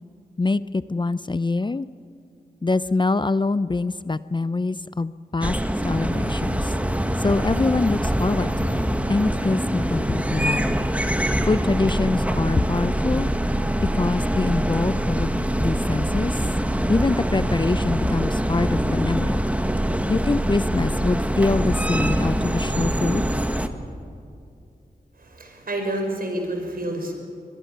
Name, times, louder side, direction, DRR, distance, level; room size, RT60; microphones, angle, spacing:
voice 1, 0.4-1.9 2.6-5.6 5.8-6.7 7.2-10.8 11.4-13.3 13.8-16.4 16.9-19.4 20.1-23.2, left 3 dB, 30° left, 15 dB, 0.6 m, -24 dB
sound 1, 5.4-23.7, right 1 dB, 10° right, 1.5 m, -24 dB
voice 2, 25.2-27.1, right 1 dB, 60° right, 3 dB, 5.2 m, -29 dB
22.5 x 21.5 x 6.8 m, 2.5 s
cardioid pair, 45°, 17 cm